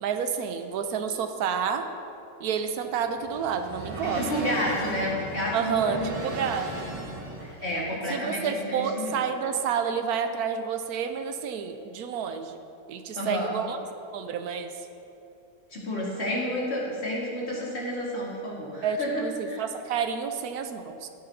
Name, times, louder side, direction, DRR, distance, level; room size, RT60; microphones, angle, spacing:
voice 1, 0.0-1.9 2.4-4.2 5.5-6.7 8.1-12.6 12.9-13.8 14.1-14.7 18.8-21.1, right 7 dB, 85° right, 8 dB, 1.2 m, -29 dB
sound 1, 2.6-7.7, right 1 dB, 25° right, 1.0 m, -37 dB
voice 2, 4.0-6.1 7.4-9.2 13.2-13.6 15.7-19.6, left 1 dB, 45° left, -5 dB, 2.1 m, -30 dB
13.0 x 9.3 x 2.8 m, 2.7 s
omnidirectional pair, 1.6 m